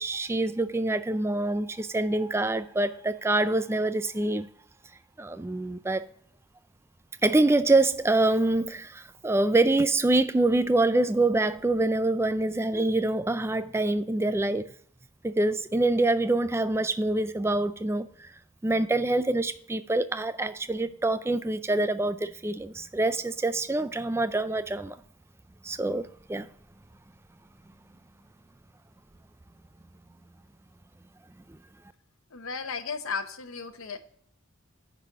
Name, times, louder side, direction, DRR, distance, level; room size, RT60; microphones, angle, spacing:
voice 1, 0.0-4.5 5.2-6.0 7.2-14.7 15.2-18.3 18.6-25.0 25.6-26.5 31.5-31.6, right 2 dB, 10° right, 0.3 m, -25 dB
voice 2, 32.3-34.0, left 5 dB, 75° left, 0.9 m, -34 dB
10.0 x 4.1 x 4.8 m
head